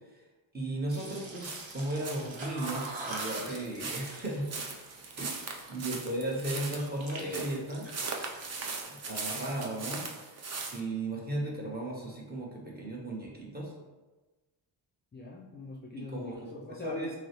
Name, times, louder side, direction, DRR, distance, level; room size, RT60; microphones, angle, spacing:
voice 1, 0.5-4.5 5.2-7.9 8.9-10.1 10.3-10.4 10.7-13.7 16.1-17.1, right 1 dB, 20° right, -3 dB, 0.9 m, -35 dB
sound 1, 0.9-6.0 6.4-7.3 7.6-8.8, right 2 dB, 80° right, 0.9 m, -44 dB
sound 2, 1.4-10.8, right 4 dB, 35° right, 0.5 m, -39 dB
voice 2, 15.1-17.1, left 3 dB, 25° left, -4 dB, 0.4 m, -43 dB
5.9 x 2.0 x 2.9 m, 1.2 s
wide cardioid pair, 105°, 46 cm